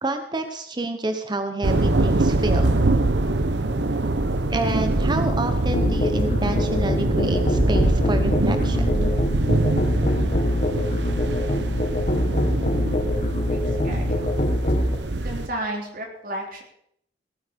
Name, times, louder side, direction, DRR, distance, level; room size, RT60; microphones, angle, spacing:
voice 1, 0.0-2.7 4.5-9.1, right 2 dB, 25° right, 7 dB, 0.9 m, -28 dB
sound 1, 1.6-15.5, right 2 dB, 85° right, 1.0 m, -24 dB
Musical instrument, 5.7-15.0, left 1 dB, 45° left, 1.6 m, -24 dB
voice 2, 13.8-14.3 15.2-16.6, right 1 dB, 55° right, 1 dB, 3.4 m, -32 dB
18.0 x 8.8 x 5.2 m, 0.70 s
head